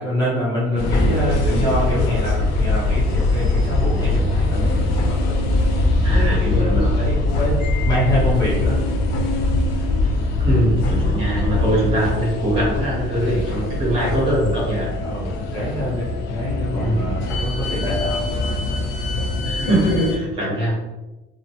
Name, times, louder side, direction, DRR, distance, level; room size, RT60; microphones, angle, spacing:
voice 1, 0.0-5.5 5.8-8.8 15.0-18.3 18.8-18.9, equal, 20° left, -7 dB, 0.7 m, -26 dB
sound 1, 0.8-20.2, left 2 dB, 60° left, 0.4 m, -21 dB
voice 2, 6.0-7.0 10.4-14.9 16.7-17.0 19.4-20.7, right 1 dB, 25° right, -6 dB, 0.8 m, -22 dB
2.8 x 2.0 x 2.7 m, 1.1 s
cardioid pair, 175°, 20 cm